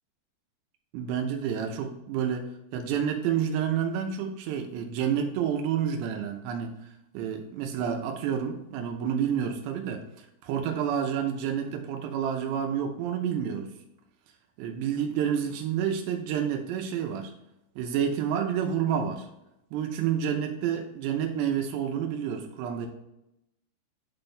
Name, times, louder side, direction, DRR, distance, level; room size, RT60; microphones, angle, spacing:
voice 1, 0.9-6.8 7.1-13.7 14.6-17.3 17.8-19.3 19.7-22.9, right 8 dB, 85° right, 4 dB, 2.9 m, -29 dB
8.6 x 4.4 x 3.3 m, 0.86 s
omnidirectional pair, 4.8 m